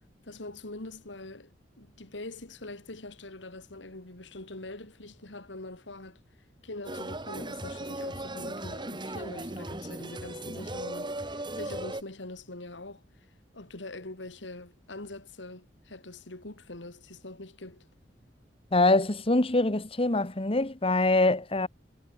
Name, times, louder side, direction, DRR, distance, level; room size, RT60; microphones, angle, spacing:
voice 1, 0.2-6.2 6.6-13.0 13.5-17.9, left 2 dB, 90° left, 2.7 m, -43 dB
sound 1, 6.8-12.0, right 1 dB, 25° right, 5.1 m, -37 dB
voice 2, 18.7-21.7, left 2 dB, 30° left, 1.4 m, -24 dB
head